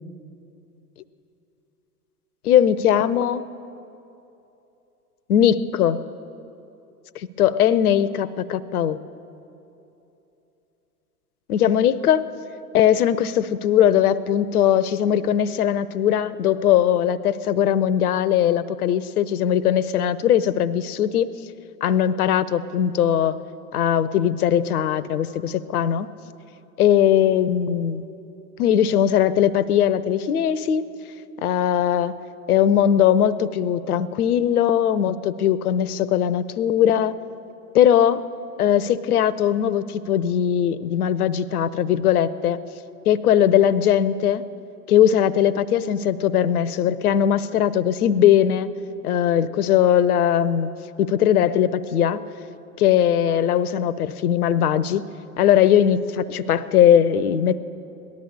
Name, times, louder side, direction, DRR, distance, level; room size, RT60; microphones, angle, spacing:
voice 1, 2.4-3.4 5.3-6.0 7.2-9.0 11.5-12.3 12.7-21.3 21.8-23.4 23.7-26.1 26.8-28.0 28.6-30.9 31.4-32.2 32.5-37.2 37.7-38.2 38.6-42.6 43.1-44.4 44.9-48.7 49.0-50.7 51.0-52.2 52.8-55.1 55.4-57.6, left 10 dB, 65° left, 16 dB, 0.7 m, -19 dB
18.0 x 11.5 x 6.7 m, 2.9 s
figure-of-eight pair, 90°, 48 cm